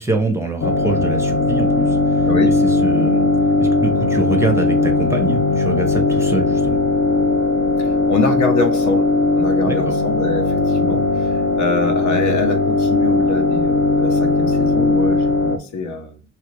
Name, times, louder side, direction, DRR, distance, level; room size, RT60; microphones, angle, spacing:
voice 1, 0.0-2.3 2.8-3.3 3.6-6.8 9.7-9.9, right 3 dB, 10° right, 3 dB, 0.6 m, -24 dB
sound 1, 0.6-15.6, left 3 dB, 45° left, 0.5 m, -18 dB
voice 2, 7.8-9.1 9.3-16.2, left 3 dB, 70° left, 4 dB, 0.8 m, -25 dB
2.9 x 2.4 x 3.0 m, 0.37 s
cardioid pair, 90°, 30 cm